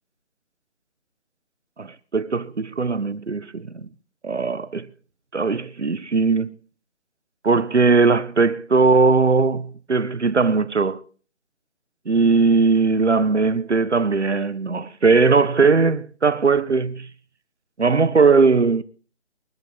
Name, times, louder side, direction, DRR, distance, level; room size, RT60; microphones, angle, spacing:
voice 1, 1.8-3.9 4.2-4.9 5.3-6.5 7.4-11.0 12.0-17.1 17.8-18.8, right 4 dB, 80° right, 1.5 m, -19 dB
24.5 x 9.3 x 4.6 m
figure-of-eight pair, 160°, 34 cm